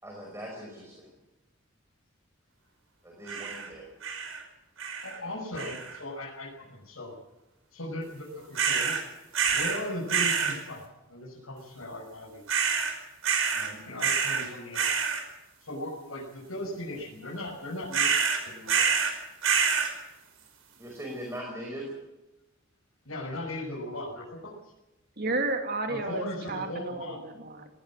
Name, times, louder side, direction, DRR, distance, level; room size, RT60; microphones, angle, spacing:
voice 1, 0.0-1.1 3.0-3.9 20.8-21.9, equal, 15° right, 0 dB, 5.3 m, -40 dB
sound 1, 3.3-3.7 4.0-4.4 4.8-5.2 5.6-6.0 8.5-9.0 9.3-9.8 10.1-10.6 12.5-12.9 13.2-13.7 14.0-14.5 14.7-15.2 17.9-19.1 19.4-19.9, right 6 dB, 85° right, 5.1 m, -27 dB
voice 2, 5.0-7.1 7.7-8.9 9.5-12.4 13.5-14.9 15.6-18.1 18.5-18.8 23.0-24.7 25.9-27.2, left 1 dB, 90° left, -4 dB, 6.2 m, -38 dB
voice 3, 25.2-27.7, right 2 dB, 50° right, 4 dB, 2.9 m, -32 dB
19.5 x 18.5 x 7.6 m, 1.0 s
head